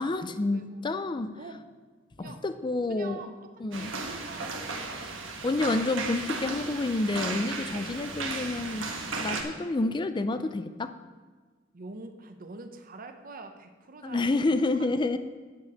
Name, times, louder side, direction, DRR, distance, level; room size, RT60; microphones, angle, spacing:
voice 1, 0.0-1.3 2.2-3.2 3.6-3.9 5.4-8.9 9.2-10.9 14.0-15.2, left 2 dB, 25° left, 10 dB, 0.4 m, -29 dB
voice 2, 2.9-3.3 3.8-5.1 11.7-14.4, right 3 dB, 45° right, 7 dB, 0.9 m, -45 dB
sound 1, 3.7-9.4, right 3 dB, 70° right, 1.4 m, -35 dB
9.0 x 5.3 x 7.8 m, 1.4 s
head